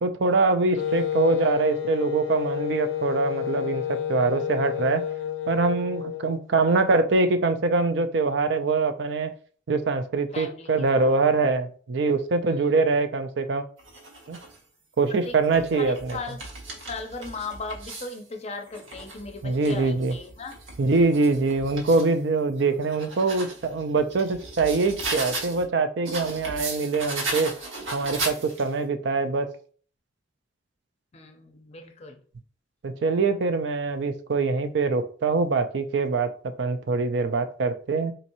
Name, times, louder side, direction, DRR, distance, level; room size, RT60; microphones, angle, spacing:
voice 1, 0.0-5.0 5.5-9.3 9.7-13.6 14.3-14.4 15.0-16.2 19.4-20.2 20.8-27.5 27.9-29.5 32.8-38.1, right 3 dB, 60° right, 9 dB, 0.4 m, -24 dB
Wind instrument woodwind instrument, 0.8-6.4, left 10 dB, 90° left, 0.6 m, -30 dB
voice 2, 10.3-11.1 12.4-12.7 15.1-16.5 16.8-20.5 31.1-32.2, left 3 dB, 35° left, 4 dB, 0.5 m, -38 dB
sound 1, 13.8-14.6 15.3-18.2 18.7-22.1 22.6-25.6 26.0-28.8, right 2 dB, 85° right, 1.1 m, -36 dB
4.1 x 2.8 x 2.6 m, 0.43 s
head